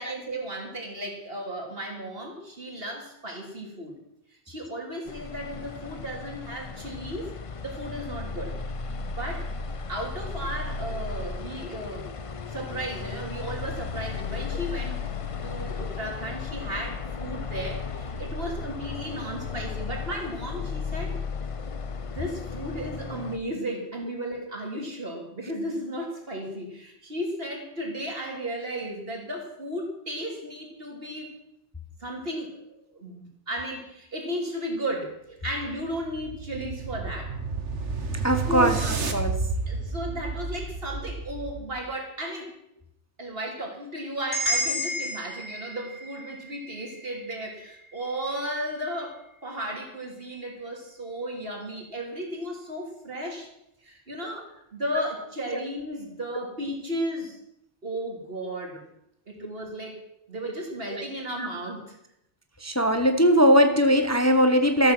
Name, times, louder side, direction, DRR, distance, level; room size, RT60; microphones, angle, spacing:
voice 1, 0.0-4.0 4.5-7.4 7.6-8.6 9.0-9.5 9.9-12.1 12.5-15.1 15.4-21.2 22.2-31.4 32.0-35.1 35.4-37.4 38.5-38.9 39.7-42.6 43.2-53.5 53.8-57.4 57.8-58.8 59.3-60.0 60.3-62.0, equal, 55° right, 1 dB, 3.5 m, -34 dB
sound 1, 5.1-23.4, left 5 dB, 35° left, 0.7 m, -35 dB
sound 2, 35.7-41.8, right 4 dB, 90° right, 1.8 m, -31 dB
voice 2, 38.2-38.7 39.1-39.4 60.9-61.0 62.6-64.9, equal, 15° left, 7 dB, 1.0 m, -20 dB
sound 3, 44.3-48.3, equal, 25° right, 7.2 m, -32 dB
13.5 x 13.0 x 6.1 m, 0.80 s
omnidirectional pair, 1.2 m